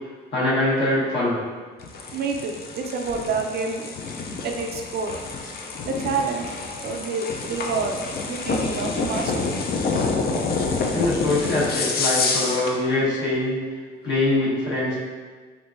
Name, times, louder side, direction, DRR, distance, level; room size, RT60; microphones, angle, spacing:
voice 1, 0.3-1.4 5.4-5.5 7.4-7.6 10.9-13.6 14.0-14.9, left 2 dB, 65° left, -8 dB, 1.3 m, -23 dB
sound 1, 1.8-12.8, left 4 dB, 50° left, 0.4 m, -28 dB
voice 2, 2.1-3.9 4.4-5.2 5.9-6.4 6.8-8.0 8.3-9.5, right 4 dB, 55° right, 3 dB, 0.4 m, -28 dB
3.6 x 2.4 x 2.5 m, 1.5 s
cardioid pair, 90°, 20 cm